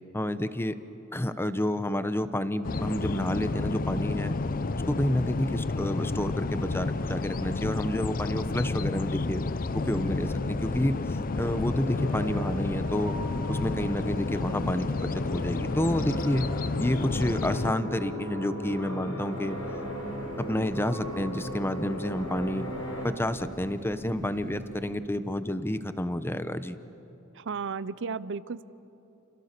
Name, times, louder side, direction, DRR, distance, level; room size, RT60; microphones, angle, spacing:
voice 1, 0.1-0.8 1.1-4.3 4.9-9.4 9.7-11.0 11.4-13.2 13.5-16.5 16.8-19.6 20.4-22.7 23.0-26.8, left 1 dB, 10° left, 12 dB, 0.9 m, -29 dB
sound 1, 2.6-17.7, left 3 dB, 40° left, 0.6 m, -31 dB
sound 2, 9.7-23.1, left 1 dB, 70° left, 4.1 m, -38 dB
sound 3, 19.3-24.9, equal, 40° right, 2.7 m, -46 dB
voice 2, 27.3-28.6, right 5 dB, 60° right, 17 dB, 0.7 m, -34 dB
29.5 x 28.0 x 6.8 m, 2.9 s
head